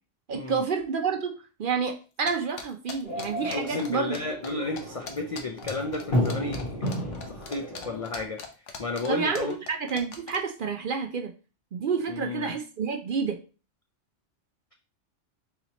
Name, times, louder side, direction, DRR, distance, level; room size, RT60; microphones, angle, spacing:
voice 1, 0.3-1.3 1.6-4.2 9.1-11.3 11.7-13.4, right 5 dB, 55° right, 4 dB, 0.6 m, -29 dB
sound 1, 2.3-4.2 4.4-4.5 4.7-10.4, left 6 dB, 80° left, 1.1 m, -40 dB
sound 2, 3.0-8.2, equal, 45° left, 1.9 m, -33 dB
voice 2, 3.5-8.4 8.8-9.5 12.1-12.6, left 3 dB, 60° left, 3 dB, 0.3 m, -33 dB
4.1 x 2.8 x 4.0 m, 0.34 s
omnidirectional pair, 1.3 m